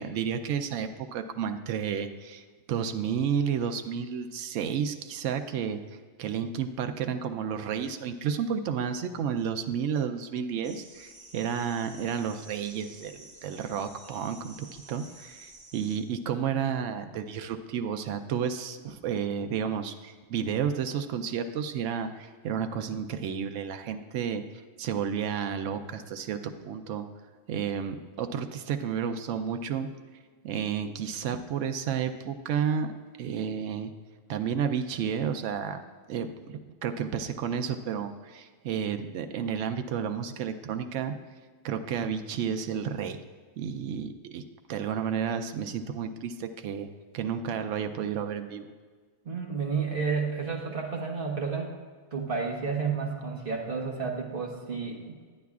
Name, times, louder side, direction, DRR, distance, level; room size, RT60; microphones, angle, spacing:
voice 1, 0.0-5.8 6.2-24.4 24.8-27.1 27.5-29.9 30.4-32.9 33.2-33.9 34.3-35.8 36.1-41.1 41.6-43.2 43.6-44.4 44.7-46.9 47.1-48.7, right 7 dB, 80° right, 7 dB, 0.9 m, -31 dB
sound 1, 10.6-16.0, right 2 dB, 5° right, 2.0 m, -51 dB
voice 2, 49.2-51.7 52.1-55.2, right 5 dB, 45° right, 0 dB, 1.4 m, -31 dB
12.0 x 9.1 x 2.4 m, 1.5 s
omnidirectional pair, 1.3 m